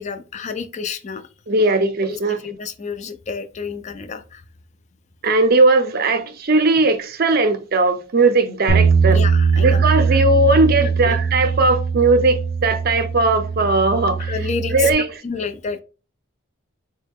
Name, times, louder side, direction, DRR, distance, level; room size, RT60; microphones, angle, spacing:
voice 1, 0.0-1.3 1.6-4.4 9.1-10.1 11.0-11.2 14.2-14.9 15.2-15.8, left 5 dB, 30° left, 0.3 m, -30 dB
voice 2, 1.5-2.4 5.2-9.2 9.6-14.4 14.7-15.1, right 2 dB, 45° right, 0.5 m, -18 dB
Bass guitar, 8.7-14.9, right 5 dB, 90° left, 0.8 m, -20 dB
4.6 x 2.2 x 3.4 m
head